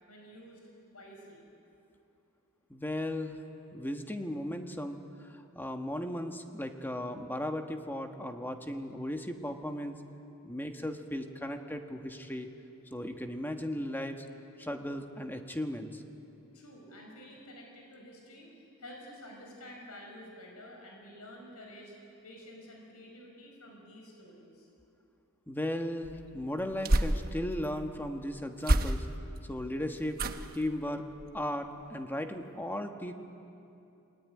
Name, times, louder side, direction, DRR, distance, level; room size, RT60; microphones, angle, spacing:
voice 1, 0.1-0.6 0.9-1.5 16.5-22.0 22.2-24.7, left 1 dB, 85° left, 0 dB, 5.6 m, -50 dB
voice 2, 2.7-3.4 3.7-5.0 5.3-10.0 10.4-12.5 12.9-14.2 14.6-16.0 25.5-29.1 29.5-30.2 30.5-31.0 31.3-33.1, left 1 dB, 10° left, 5 dB, 1.4 m, -36 dB
sound 1, 26.0-27.7 28.6-29.4 30.1-30.7 31.1-31.5 31.8-31.9, right 1 dB, 45° right, 1.1 m, -30 dB
29.0 x 21.0 x 9.6 m, 2.7 s
head